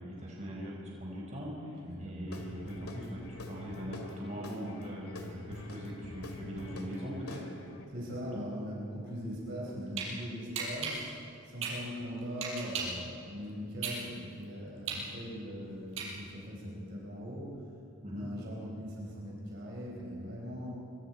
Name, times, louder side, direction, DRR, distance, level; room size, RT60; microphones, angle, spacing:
voice 1, 0.0-7.5 8.2-8.4 18.0-18.3, equal, 30° right, -3 dB, 5.0 m, -41 dB
voice 2, 1.8-2.3 7.9-11.0 11.4-17.5 18.1-20.7, equal, 50° right, -3 dB, 4.7 m, -40 dB
Guitar / Drum, 2.3-7.8, left 1 dB, 90° left, 2.4 m, -45 dB
sound 1, 9.5-10.1 10.5-13.0 13.4-16.5, right 6 dB, 65° right, 5.5 m, -37 dB
25.5 x 23.5 x 4.5 m, 2.5 s
head